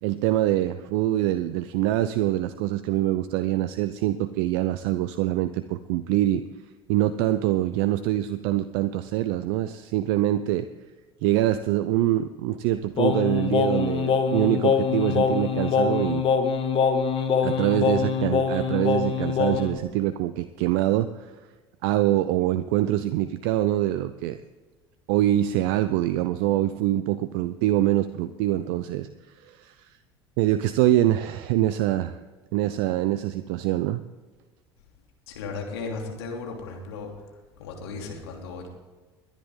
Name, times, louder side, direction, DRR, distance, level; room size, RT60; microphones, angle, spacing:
voice 1, 0.0-6.4 6.9-10.7 11.2-16.2 17.4-21.3 21.8-24.4 25.1-30.0 30.4-32.2 32.5-34.0, right 14 dB, 65° right, 12 dB, 0.6 m, -24 dB
Singing, 13.0-19.8, left 6 dB, 40° left, 1.6 m, -24 dB
voice 2, 35.3-37.1 37.6-38.7, left 4 dB, 75° left, 1 dB, 3.0 m, -35 dB
22.0 x 10.5 x 3.8 m, 1.3 s
hypercardioid pair, 70°, 14 cm